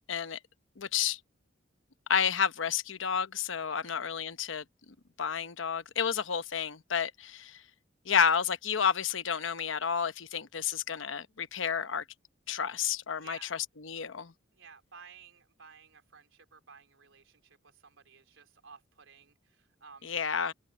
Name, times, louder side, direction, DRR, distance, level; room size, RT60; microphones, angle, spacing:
voice 1, 0.1-0.4 0.8-1.2 2.1-4.6 5.2-7.6 8.1-12.0 12.5-14.3 20.0-20.5, left 7 dB, 75° left, 0.9 m, -30 dB
voice 2, 3.7-4.0 13.2-13.5 14.5-20.5, right 6 dB, 90° right, 4.2 m, -55 dB
head